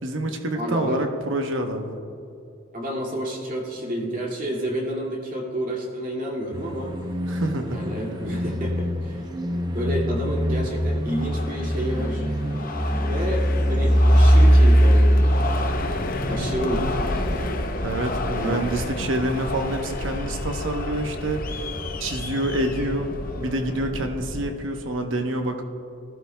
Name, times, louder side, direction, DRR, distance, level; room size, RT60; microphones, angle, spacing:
voice 1, 0.0-2.0 7.3-7.8 17.8-21.7 22.0-25.6, right 1 dB, 70° right, 4 dB, 1.0 m, -27 dB
voice 2, 0.5-1.0 2.7-6.9 7.7-12.2 13.1-15.8 16.3-17.1 18.3-18.7, equal, 40° right, -2 dB, 2.2 m, -30 dB
sound 1, 6.5-17.6, equal, 20° right, 0.7 m, -21 dB
sound 2, 11.1-23.9, left 3 dB, 45° left, 0.7 m, -34 dB
sound 3, 15.7-24.5, left 1 dB, 80° left, 1.2 m, -32 dB
19.0 x 14.5 x 2.2 m, 2.6 s
head